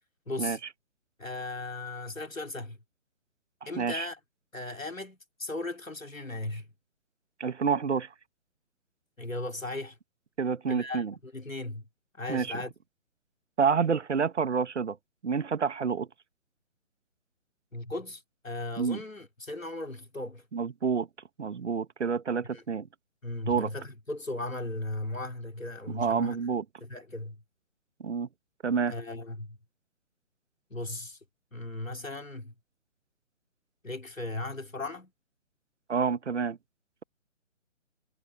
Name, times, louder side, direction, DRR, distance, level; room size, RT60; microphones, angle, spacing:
voice 1, 0.3-0.6 1.2-2.8 3.7-4.2 4.5-6.7 9.2-10.0 10.7-11.9 12.1-12.7 17.7-20.5 22.4-22.6 23.2-26.4 26.8-27.4 28.9-29.6 30.7-31.2 31.5-32.5 33.8-35.1, left 2 dB, 90° left, 2.9 m, -37 dB
voice 2, 3.8-4.1 7.4-8.1 10.4-11.1 12.3-12.6 13.6-15.0 15.2-16.1 18.8-19.0 20.5-21.1 21.4-22.9 23.5-23.7 25.9-26.6 28.0-28.3 28.6-28.9 35.9-36.6, right 6 dB, 60° right, 1.4 m, -28 dB
figure-of-eight pair, 140°, 39 cm